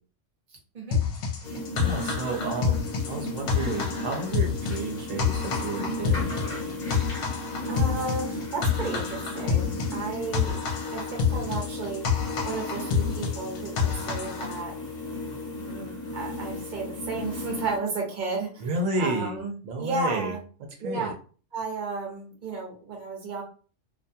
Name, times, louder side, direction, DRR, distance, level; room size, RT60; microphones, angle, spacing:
sound 1, 0.9-14.6, left 6 dB, 70° left, 1.0 m, -28 dB
sound 2, 1.4-17.8, left 1 dB, 40° left, 1.0 m, -35 dB
voice 1, 1.4-6.3 18.6-19.4 19.6-20.3 20.8-21.1, right 2 dB, 85° right, 2 dB, 1.0 m, -31 dB
voice 2, 7.7-10.6 10.9-12.1 12.4-14.7 15.6-19.5 19.8-20.4 20.8-21.1 21.5-23.4, right 3 dB, 45° right, -1 dB, 1.0 m, -33 dB
2.5 x 2.2 x 2.6 m, 0.39 s
omnidirectional pair, 1.3 m